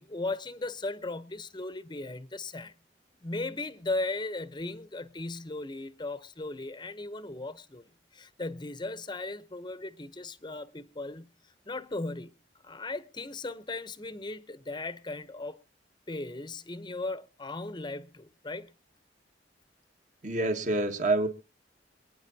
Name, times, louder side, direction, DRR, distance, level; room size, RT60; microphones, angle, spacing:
voice 1, 0.0-2.7 3.2-7.8 8.1-12.3 12.6-15.6 16.1-18.7, left 2 dB, 25° left, 0.8 m, -37 dB
voice 2, 20.2-21.3, right 2 dB, 45° right, 1.6 m, -27 dB
27.0 x 9.6 x 2.8 m
head